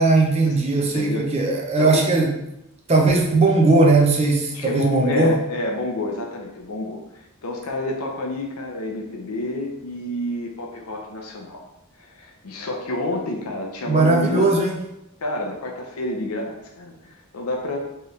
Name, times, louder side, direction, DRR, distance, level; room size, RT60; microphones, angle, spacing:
voice 1, 0.0-2.3 2.9-5.4 13.9-14.8, right 3 dB, 30° right, 0 dB, 0.7 m, -18 dB
voice 2, 0.9-1.3 1.8-2.1 4.5-7.0 7.4-11.6 12.0-14.4 15.2-17.8, left 2 dB, 90° left, 1 dB, 0.7 m, -29 dB
4.5 x 3.1 x 3.2 m, 0.85 s
head